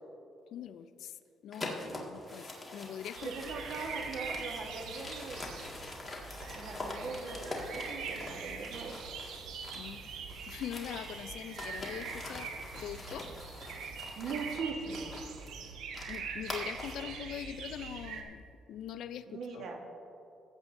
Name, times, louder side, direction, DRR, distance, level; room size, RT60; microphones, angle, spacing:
voice 1, 0.5-1.2 1.4-3.3 9.7-10.1 10.5-13.3 16.1-19.6, left 9 dB, 80° left, 13 dB, 0.4 m, -43 dB
sound 1, 1.5-10.0 10.3-17.1, left 2 dB, 25° left, 1.8 m, -44 dB
voice 2, 1.6-2.1 3.2-5.7 6.5-9.0 14.2-15.2 19.3-19.8, right 4 dB, 70° right, 2 dB, 1.3 m, -41 dB
sound 2, 2.3-14.5, right 3 dB, 50° right, 2.7 m, -60 dB
sound 3, 3.2-18.2, right 5 dB, 85° right, 1.0 m, -43 dB
18.0 x 8.1 x 2.6 m, 2.7 s
cardioid pair, 90°, 0 cm